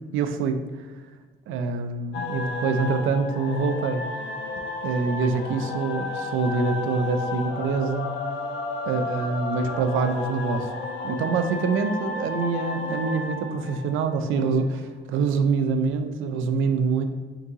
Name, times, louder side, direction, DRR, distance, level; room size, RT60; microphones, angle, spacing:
voice 1, 0.1-0.9 1.5-4.0 4.8-8.1 8.9-10.7 11.0-17.0, right 4 dB, 85° right, 8 dB, 0.4 m, -25 dB
sound 1, 2.1-14.7, left 3 dB, 70° left, 0.5 m, -32 dB
3.7 x 3.6 x 2.8 m, 1.4 s
cardioid pair, 90°, 20 cm